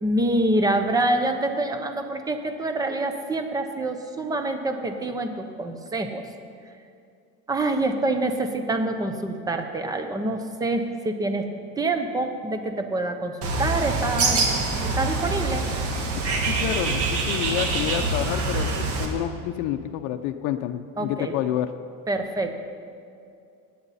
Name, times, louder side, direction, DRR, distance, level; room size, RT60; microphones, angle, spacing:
voice 1, 0.0-6.2 7.5-11.5 11.8-14.5 14.8-15.7 21.0-21.3 22.1-22.6, right 2 dB, 10° right, 7 dB, 0.7 m, -26 dB
Bird, 13.4-19.1, right 3 dB, 45° right, 1.7 m, -25 dB
voice 2, 16.5-21.7, left 11 dB, 70° left, 7 dB, 0.6 m, -28 dB
17.0 x 9.6 x 4.2 m, 2.5 s
cardioid pair, 155°, 31 cm